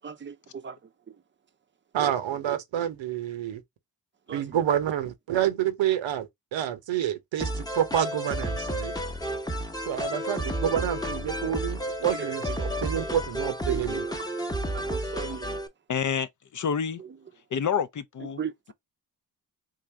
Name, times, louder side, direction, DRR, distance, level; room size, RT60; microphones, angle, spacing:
voice 1, 0.0-0.8 4.3-4.6 12.1-12.6 13.7-14.3 14.7-15.6 17.0-17.2 18.4-18.7, right 7 dB, 25° right, 0.6 m, -38 dB
voice 2, 1.9-3.6 4.3-8.9 9.9-14.1, right 10 dB, 90° right, 0.8 m, -28 dB
sound 1, 7.4-15.7, equal, 10° left, 0.8 m, -31 dB
voice 3, 15.9-16.3 16.5-17.0 17.5-18.4, left 7 dB, 45° left, 0.5 m, -27 dB
3.7 x 2.5 x 3.3 m
cardioid pair, 60°, 44 cm